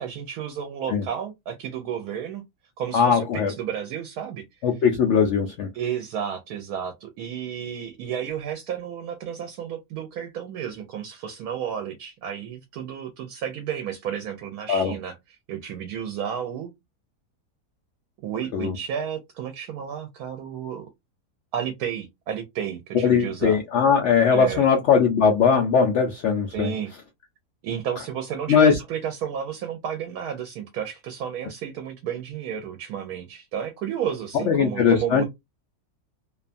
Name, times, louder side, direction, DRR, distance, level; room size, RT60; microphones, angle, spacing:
voice 1, 0.0-2.4 2.8-4.6 5.7-16.7 18.2-20.9 21.5-23.6 24.3-24.6 26.5-26.9 27.6-35.2, right 8 dB, 70° right, 1.0 m, -32 dB
voice 2, 2.9-3.5 4.6-5.7 14.7-14.9 18.5-18.8 23.0-26.7 28.5-28.8 34.5-35.2, left 6 dB, 85° left, 0.6 m, -20 dB
2.7 x 2.2 x 2.5 m
omnidirectional pair, 1.8 m